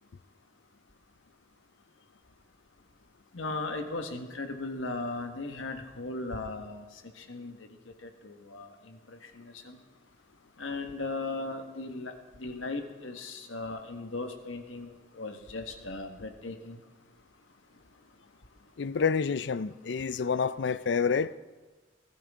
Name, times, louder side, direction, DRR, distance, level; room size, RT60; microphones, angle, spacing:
voice 1, 3.3-6.8 7.2-7.6 8.0-9.0 9.3-9.8 10.6-12.1 12.4-14.9 15.2-16.8 19.1-19.2, left 3 dB, 90° left, 1.5 m, -37 dB
voice 2, 18.8-21.3, left 5 dB, 65° left, 0.4 m, -28 dB
19.0 x 13.0 x 3.7 m
head